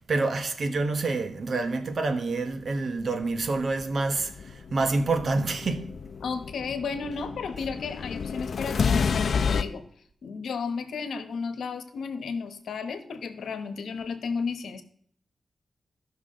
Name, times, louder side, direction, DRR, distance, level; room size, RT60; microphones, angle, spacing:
voice 1, 0.0-5.9, right 3 dB, 60° right, 1.2 m, -27 dB
sound 1, 3.2-9.6, left 5 dB, 65° left, 0.6 m, -30 dB
voice 2, 6.2-9.8 10.2-14.8, left 5 dB, 85° left, 1.0 m, -33 dB
15.0 x 6.0 x 3.8 m
cardioid pair, 80°, 0 cm